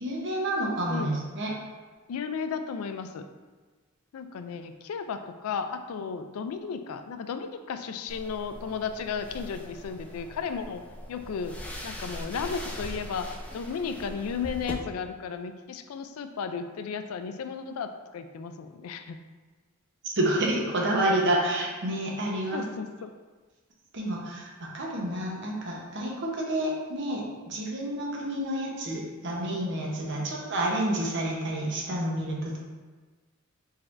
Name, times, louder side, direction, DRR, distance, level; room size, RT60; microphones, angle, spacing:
voice 1, 0.0-1.5 20.0-22.7 23.9-32.6, right 1 dB, 60° right, -2 dB, 0.9 m, -29 dB
voice 2, 2.1-3.3 4.1-10.8 11.1-11.6 11.8-19.2 22.5-23.1 30.2-30.3, left 6 dB, 90° left, 9 dB, 0.3 m, -34 dB
sound 1, 8.1-14.7, equal, 5° left, 0.4 m, -41 dB
4.3 x 4.0 x 2.5 m, 1.4 s
head